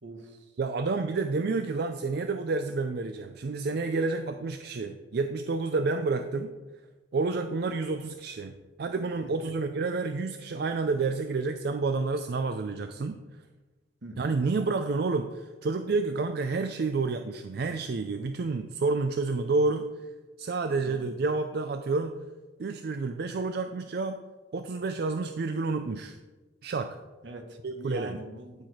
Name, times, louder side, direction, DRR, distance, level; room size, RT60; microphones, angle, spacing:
voice 1, 0.0-0.4 14.0-14.3 20.8-21.1 27.2-28.7, right 2 dB, 80° right, 5 dB, 1.3 m, -43 dB
voice 2, 0.6-6.5 7.1-8.5 8.8-13.2 14.2-20.1 20.4-22.2 22.6-24.2 24.5-26.2 26.6-27.0 27.6-28.2, right 3 dB, 60° right, 8 dB, 0.4 m, -29 dB
12.0 x 4.7 x 4.8 m, 1.2 s
head